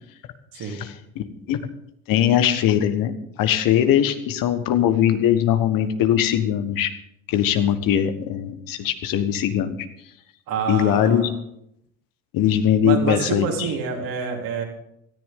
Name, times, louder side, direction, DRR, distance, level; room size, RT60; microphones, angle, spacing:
voice 1, 0.6-1.6 2.1-3.1 3.4-6.9 7.3-9.8 10.7-11.3 12.3-13.7, left 10 dB, 60° left, 9 dB, 1.5 m, -21 dB
voice 2, 10.5-11.3 12.8-14.6, right 6 dB, 60° right, 0 dB, 4.0 m, -27 dB
18.0 x 14.0 x 3.8 m, 0.76 s
hypercardioid pair, 65°, 39 cm